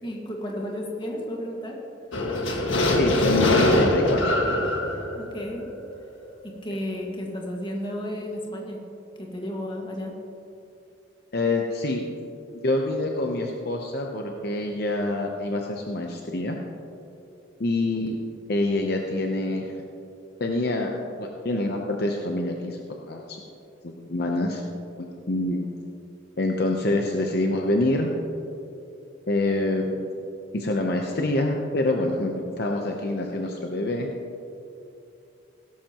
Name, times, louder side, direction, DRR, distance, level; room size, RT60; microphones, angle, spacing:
voice 1, 0.0-1.8 5.1-5.7 6.4-8.8 9.2-10.2 17.9-18.0, equal, 25° left, -1 dB, 1.7 m, -33 dB
sound 1, 2.1-6.2, left 1 dB, 80° left, 1.8 m, -23 dB
voice 2, 3.0-4.2 11.3-12.0 12.6-16.6 17.6-18.2 18.5-19.7 20.4-20.9 21.2-22.8 23.1-23.4 23.8-24.6 25.0-25.7 26.4-28.1 29.3-30.1 30.5-34.1, left 2 dB, 55° left, 1 dB, 0.8 m, -26 dB
16.0 x 13.0 x 3.0 m, 2.6 s
head